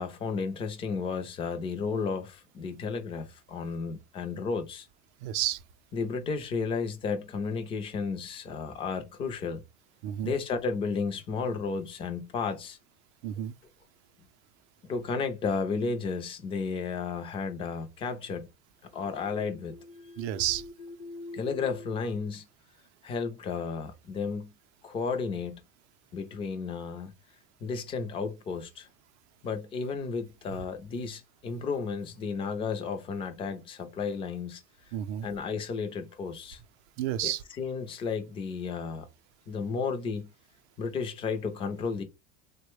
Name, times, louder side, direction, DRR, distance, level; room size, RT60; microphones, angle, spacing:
voice 1, 0.0-4.9 5.9-9.6 10.2-12.8 14.9-18.5 18.9-22.5 23.0-24.5 24.8-25.6 26.1-27.1 27.6-28.9 29.4-34.6 35.2-36.6 37.2-39.1 39.5-40.3 40.8-42.0, left 5 dB, 15° left, 0.3 m, -33 dB
voice 2, 5.2-5.6 10.0-10.3 13.2-13.5 20.2-20.6 34.9-35.3 37.0-37.4, right 12 dB, 70° right, 0.5 m, -30 dB
3.5 x 2.1 x 3.1 m
supercardioid pair, 165°, 35 cm